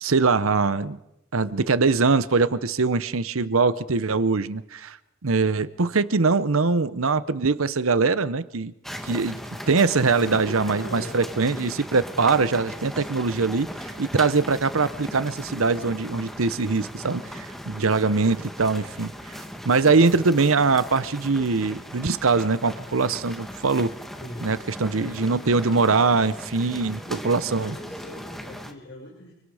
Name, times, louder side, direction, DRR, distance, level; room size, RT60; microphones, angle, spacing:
voice 1, 0.0-1.0 1.3-5.0 5.2-8.7 9.0-9.4 9.7-19.4 19.6-23.9 24.4-27.7, right 4 dB, 85° right, 15 dB, 0.9 m, -22 dB
sound 1, 8.8-28.7, equal, ahead, 2.1 m, -38 dB
voice 2, 10.1-11.8 24.2-24.5 24.9-25.8 26.7-29.3, left 1 dB, 60° left, -3 dB, 5.7 m, -41 dB
29.5 x 24.5 x 5.0 m, 0.84 s
head